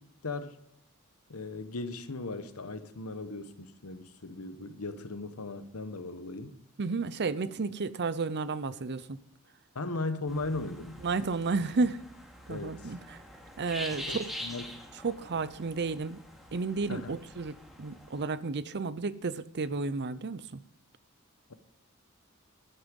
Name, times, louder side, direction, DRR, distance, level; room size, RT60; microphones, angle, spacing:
voice 1, 0.2-0.6 1.3-6.5 9.7-11.0 12.5-12.9 13.9-14.7 16.9-17.1, left 3 dB, 75° left, 1.1 m, -37 dB
voice 2, 6.8-9.2 11.0-12.0 12.5-13.2 13.6-14.3 15.0-16.2 16.5-20.6, right 4 dB, 50° right, 0.6 m, -32 dB
sound 1, 10.3-18.2, equal, ahead, 2.5 m, -45 dB
12.5 x 9.7 x 5.3 m
head